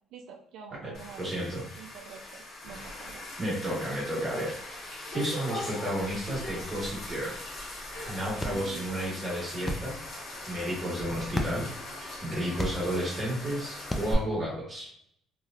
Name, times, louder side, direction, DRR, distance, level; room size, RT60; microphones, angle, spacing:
voice 1, 0.1-1.2 1.8-3.2 8.5-8.8, right 6 dB, 75° right, 2 dB, 0.3 m, -47 dB
voice 2, 0.8-1.6 3.4-4.5 5.1-7.4 8.1-9.9 10.5-11.7 12.0-14.9, equal, 15° right, -6 dB, 1.4 m, -32 dB
sound 1, 0.9-14.1, left 1 dB, 50° left, 1.0 m, -40 dB
sound 2, 7.6-14.3, left 1 dB, 15° left, 0.4 m, -39 dB
3.1 x 2.5 x 2.4 m, 0.68 s
cardioid pair, 140°, 0 cm